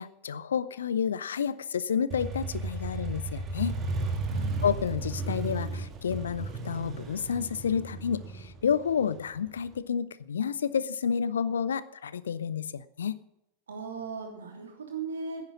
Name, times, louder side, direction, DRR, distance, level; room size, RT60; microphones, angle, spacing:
voice 1, 0.0-3.8 4.6-13.2, left 7 dB, 65° left, 17 dB, 0.6 m, -30 dB
Motorcycle, 2.1-9.7, right 3 dB, 30° right, 2.2 m, -34 dB
voice 2, 4.3-4.7 13.7-15.4, right 4 dB, 70° right, 2 dB, 3.2 m, -38 dB
10.5 x 9.7 x 8.6 m, 0.84 s
figure-of-eight pair, 90°, 0 cm